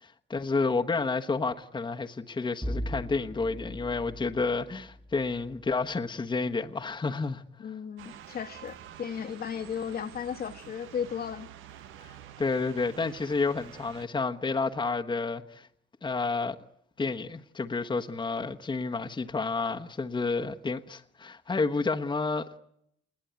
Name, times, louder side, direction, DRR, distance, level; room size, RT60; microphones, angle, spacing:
voice 1, 0.0-7.4 12.0-15.7 16.0-16.6 17.0-22.6, left 4 dB, 25° left, 1.2 m, -30 dB
Bowed string instrument, 2.6-5.7, equal, 5° right, 1.4 m, -38 dB
voice 2, 7.6-11.5, left 7 dB, 50° left, 1.4 m, -35 dB
sound 1, 8.0-14.1, right 10 dB, 90° right, 1.0 m, -48 dB
28.0 x 20.5 x 9.4 m
cardioid pair, 90°, 20 cm